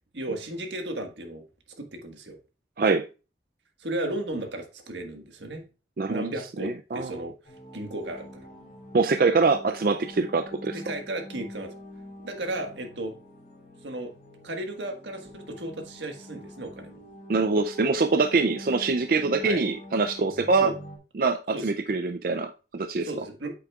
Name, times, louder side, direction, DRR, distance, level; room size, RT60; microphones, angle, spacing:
voice 1, 0.1-1.4 1.8-2.4 3.8-5.7 6.1-7.3 7.7-8.4 10.7-11.7 12.2-13.1 13.8-14.1 14.4-17.0 19.4-19.6 20.6-20.7 21.5-21.7 23.0-23.5, right 1 dB, 90° right, 1.5 m, -34 dB
voice 2, 6.6-7.3 8.9-10.8 17.3-20.7 21.1-23.1, right 4 dB, 50° right, 0.4 m, -24 dB
sound 1, 7.4-21.0, left 1 dB, 45° left, 3.7 m, -45 dB
8.6 x 7.7 x 2.4 m
head